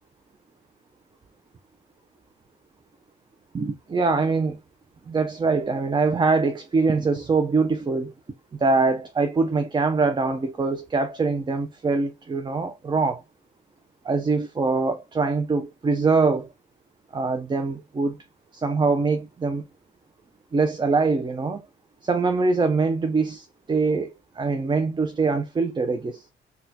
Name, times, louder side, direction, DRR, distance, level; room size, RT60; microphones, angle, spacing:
voice 1, 3.5-4.6 5.1-8.1 8.6-13.2 14.0-16.5 17.1-18.2 18.5-19.6 20.5-21.7 22.0-26.2, right 4 dB, 25° right, 0.5 m, -23 dB
4.0 x 2.3 x 2.7 m
cardioid pair, 90°, 20 cm